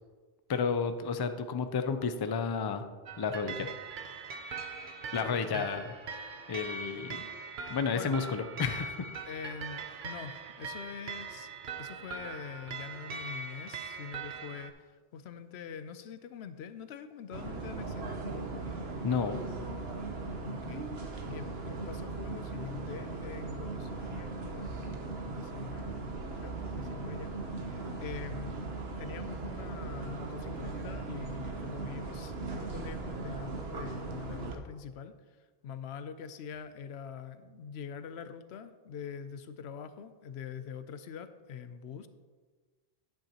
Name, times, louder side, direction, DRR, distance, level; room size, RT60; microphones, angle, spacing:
voice 1, 0.5-2.9 3.2-3.7 5.1-5.9 6.5-7.3 7.7-9.1 19.0-19.4, left 5 dB, 40° left, 8 dB, 0.3 m, -31 dB
sound 1, 3.1-14.7, right 4 dB, 55° right, 0.8 m, -41 dB
voice 2, 5.2-5.7 6.9-7.0 7.9-8.2 9.2-18.5 20.4-20.9 21.2-26.0 26.4-27.3 27.6-28.6 29.0-42.1, left 7 dB, 90° left, 11 dB, 0.9 m, -44 dB
sound 2, 17.3-34.5, right 3 dB, 75° right, 1.2 m, -38 dB
10.5 x 9.1 x 2.9 m, 1.4 s
omnidirectional pair, 1.1 m